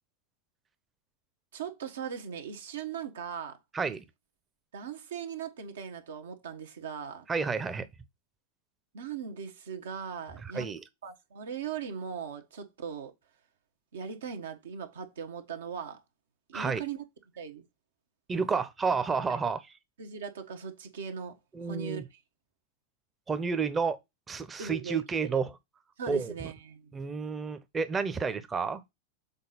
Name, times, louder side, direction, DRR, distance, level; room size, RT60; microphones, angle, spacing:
voice 1, 1.5-3.6 4.7-7.3 8.9-10.7 11.0-13.1 13.9-16.0 16.5-17.0 17.4-17.6 19.3-19.4 20.0-21.4 21.6-22.2 24.6-25.4 26.0-26.9 28.2-28.4, right 7 dB, 65° right, 1.3 m, -39 dB
voice 2, 3.7-4.0 7.3-7.9 10.5-10.8 16.5-16.8 18.3-19.7 21.5-22.0 23.3-24.0 24.3-25.5 26.1-26.3 26.9-28.8, right 5 dB, 15° right, 0.9 m, -30 dB
7.2 x 4.1 x 4.0 m
figure-of-eight pair, 90°, 0 cm